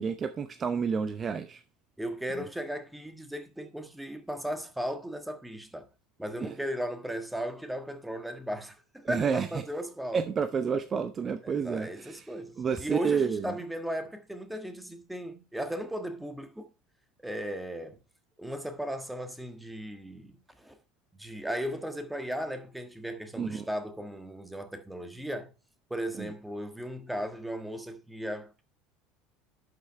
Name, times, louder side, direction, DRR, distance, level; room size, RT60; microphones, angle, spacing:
voice 1, 0.0-1.6 2.4-2.5 6.4-6.5 9.0-9.5 10.1-12.3 12.6-13.6 23.4-23.7 26.2-26.3, right 6 dB, 30° right, 0.7 m, -30 dB
voice 2, 2.0-5.9 6.2-10.2 11.4-16.7 17.2-18.0 18.4-20.8 21.2-25.5 25.9-28.6, equal, 5° right, 1.5 m, -36 dB
11.5 x 5.6 x 3.3 m
figure-of-eight pair, 70°, 0 cm